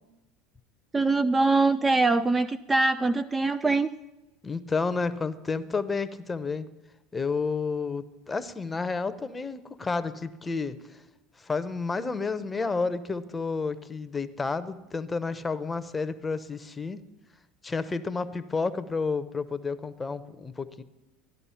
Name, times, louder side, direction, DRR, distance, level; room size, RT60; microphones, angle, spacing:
voice 1, 0.9-3.9, right 3 dB, 15° right, 14 dB, 0.4 m, -23 dB
voice 2, 4.4-6.7 7.1-11.0 11.4-17.0 17.6-20.8, left 4 dB, 20° left, 14 dB, 0.8 m, -31 dB
14.0 x 11.0 x 5.8 m, 1.0 s
hypercardioid pair, 90°, 0 cm